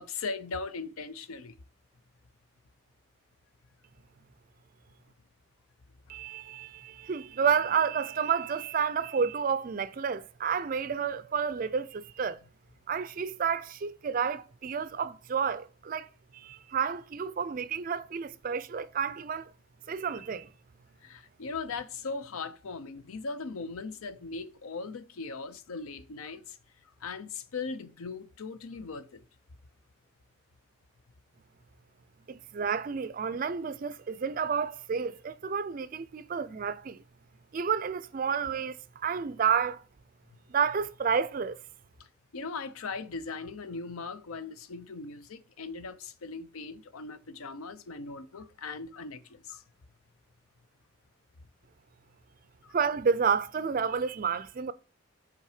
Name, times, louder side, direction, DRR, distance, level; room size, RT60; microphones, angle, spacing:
voice 1, 0.0-1.6 21.0-26.6 27.0-29.2 42.3-49.6 52.6-52.8, left 4 dB, 90° left, 0.6 m, -39 dB
voice 2, 6.1-12.4 12.9-16.1 16.3-19.5 19.9-20.5 32.3-37.0 37.5-39.8 40.5-41.6 52.7-54.7, right 6 dB, 40° right, 0.3 m, -30 dB
5.4 x 3.9 x 4.9 m
head